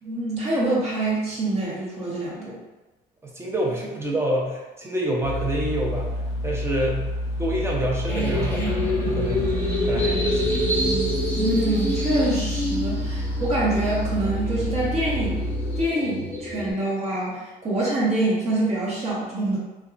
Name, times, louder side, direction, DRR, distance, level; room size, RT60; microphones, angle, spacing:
voice 1, 0.0-2.6 11.3-19.6, right 2 dB, 40° right, -7 dB, 1.0 m, -25 dB
voice 2, 3.2-6.1 6.4-7.0 7.4-9.5 9.8-11.1, right 1 dB, 15° right, -2 dB, 0.6 m, -27 dB
sound 1, 5.2-15.9, left 1 dB, 80° left, 0.4 m, -29 dB
sound 2, 8.1-16.7, equal, 10° left, 0.9 m, -27 dB
2.8 x 2.2 x 2.4 m, 1.1 s
cardioid pair, 110°, 17 cm